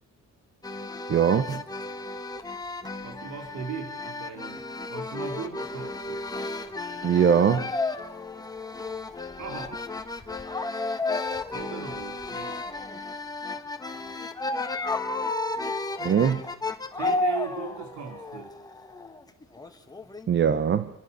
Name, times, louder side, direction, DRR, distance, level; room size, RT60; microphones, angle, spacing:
sound 1, 0.6-20.3, left 2 dB, 15° left, 1.5 m, -33 dB
voice 1, 1.1-1.6 7.0-7.7 16.0-16.4 20.3-20.9, right 8 dB, 40° right, 12 dB, 1.0 m, -21 dB
voice 2, 3.0-6.2 9.4-9.9 11.5-12.6 16.9-18.5, right 6 dB, 85° right, 4 dB, 3.3 m, -38 dB
28.0 x 25.0 x 6.8 m, 0.84 s
cardioid pair, 150°, 29 cm